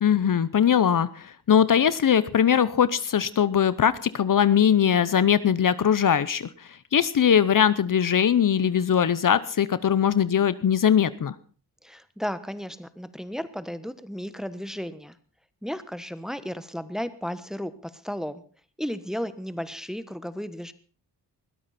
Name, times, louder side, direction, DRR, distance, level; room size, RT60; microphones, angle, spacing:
voice 1, 0.0-6.5 6.9-11.3, left 8 dB, 55° left, 16 dB, 0.8 m, -21 dB
voice 2, 11.8-15.2 15.6-18.4 18.8-20.7, equal, ahead, 13 dB, 1.2 m, -34 dB
21.0 x 13.5 x 4.2 m, 0.40 s
cardioid pair, 80°, 39 cm